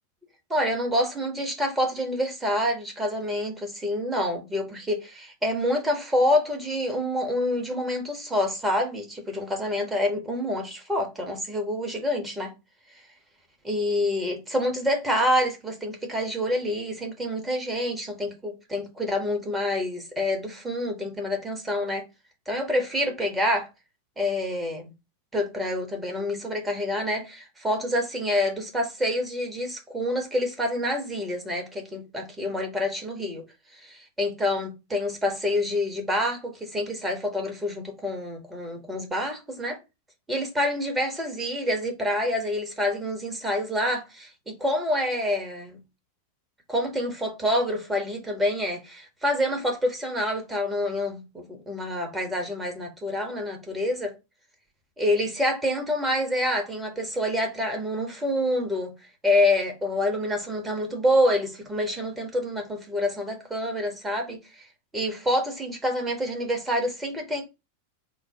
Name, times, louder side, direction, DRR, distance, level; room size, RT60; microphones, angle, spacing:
voice 1, 0.5-12.5 13.6-22.0 22.5-23.7 24.2-24.9 25.3-33.4 33.7-39.8 40.3-45.8 46.7-54.1 55.0-58.9 59.2-64.7 64.9-67.4, left 1 dB, 10° right, 1.3 m, -27 dB
3.7 x 2.1 x 3.6 m
figure-of-eight pair, 90°, 0 cm